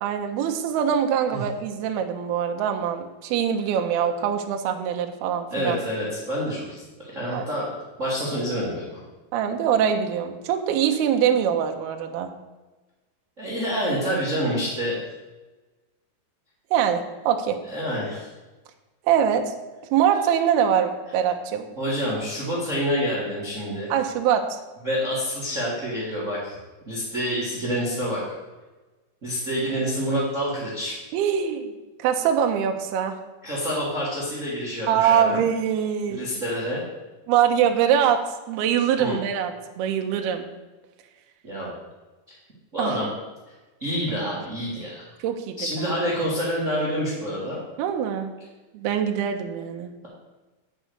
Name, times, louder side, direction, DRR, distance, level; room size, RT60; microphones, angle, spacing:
voice 1, 0.0-5.8 7.3-7.5 9.3-12.3 16.7-17.6 19.0-19.5 19.9-21.7 23.9-24.6 31.1-31.7 32.0-33.2 34.9-36.3 37.3-38.2 38.5-40.5 42.8-43.0 45.2-45.9 47.8-48.3 48.7-49.9, right 8 dB, 80° right, 4 dB, 2.3 m, -23 dB
voice 2, 5.5-7.7 8.0-9.0 13.4-15.0 17.6-18.3 21.8-23.9 24.8-26.6 26.9-28.2 29.2-30.9 33.4-35.4 36.1-36.8 39.0-39.2 41.4-41.7 42.7-43.1 43.8-45.0 45.6-47.6, equal, 50° right, -5 dB, 0.9 m, -27 dB
7.6 x 6.2 x 7.9 m, 1.2 s
omnidirectional pair, 5.5 m